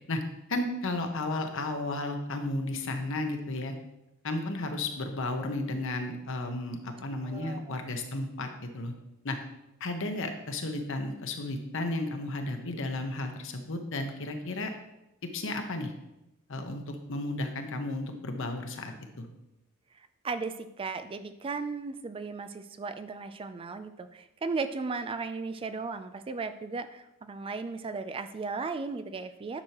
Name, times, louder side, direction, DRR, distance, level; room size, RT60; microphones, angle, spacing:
voice 1, 0.5-3.7 4.2-8.9 9.2-9.4 9.8-14.7 15.3-15.9 16.5-19.3, left 2 dB, 65° left, 5 dB, 1.0 m, -33 dB
voice 2, 7.3-7.8 20.2-29.6, right 4 dB, 25° right, 10 dB, 0.3 m, -36 dB
9.8 x 6.3 x 2.9 m, 0.90 s
head